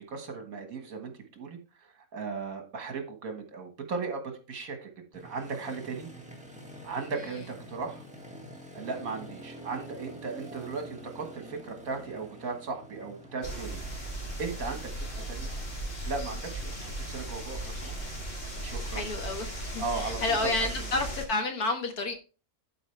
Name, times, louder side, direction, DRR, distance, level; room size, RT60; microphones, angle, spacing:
voice 1, 0.1-6.1 6.8-8.0 8.7-13.8 14.4-15.5 16.1-17.9 18.6-19.1 19.8-20.6, right 4 dB, 65° right, 1.9 m, -37 dB
Motorcycle, 5.1-18.1, right 1 dB, 5° right, 1.5 m, -48 dB
sound 1, 13.4-21.2, right 1 dB, 40° left, 2.6 m, -37 dB
voice 2, 18.9-22.1, left 2 dB, 75° left, 1.9 m, -30 dB
11.5 x 4.8 x 3.3 m
omnidirectional pair, 1.6 m